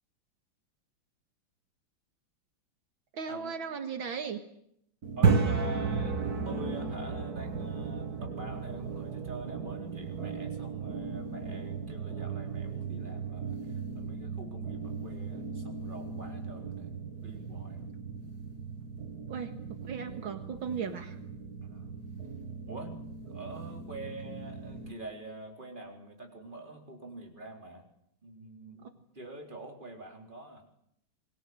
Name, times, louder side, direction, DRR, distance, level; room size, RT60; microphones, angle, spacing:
voice 1, 3.1-4.4 19.3-21.2, right 6 dB, 75° right, 7 dB, 2.5 m, -37 dB
sound 1, 5.0-24.9, right 5 dB, 50° right, 2.5 m, -35 dB
voice 2, 5.2-17.0 17.2-18.0 21.6-22.0 22.7-27.9 28.2-30.7, right 2 dB, 25° right, 2 dB, 4.3 m, -46 dB
28.5 x 22.5 x 7.9 m, 0.74 s
omnidirectional pair, 2.2 m